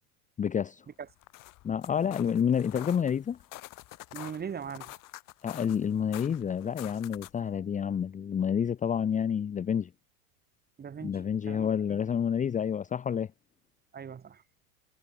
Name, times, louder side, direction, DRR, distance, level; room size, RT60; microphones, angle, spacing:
voice 1, 0.4-0.8 1.6-3.4 5.4-9.9 11.0-13.3, left 8 dB, 15° left, 0.9 m, -29 dB
sound 1, 1.1-7.5, left 18 dB, 45° left, 5.5 m, -47 dB
voice 2, 4.1-4.9 10.8-12.0 13.9-14.4, right 7 dB, 20° right, 2.4 m, -40 dB
supercardioid pair, 115°, 45 cm